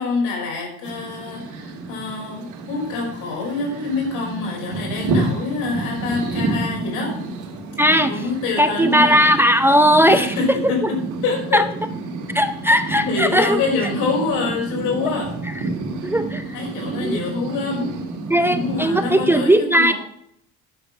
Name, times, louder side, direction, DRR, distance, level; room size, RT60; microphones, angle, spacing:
voice 1, 0.0-7.2 8.1-9.3 10.1-11.6 13.0-15.3 16.5-17.9 18.4-19.9, left 4 dB, 85° left, -1 dB, 5.3 m, -26 dB
sound 1, 0.8-19.4, right 3 dB, 70° right, 2.9 m, -29 dB
voice 2, 7.8-8.2 8.6-10.9 11.5-11.6 12.3-13.6 15.6-15.7 16.0-16.6 17.0-17.2 18.3-19.9, equal, 5° right, 9 dB, 0.5 m, -17 dB
11.0 x 6.9 x 6.0 m, 0.70 s
cardioid pair, 150°, 31 cm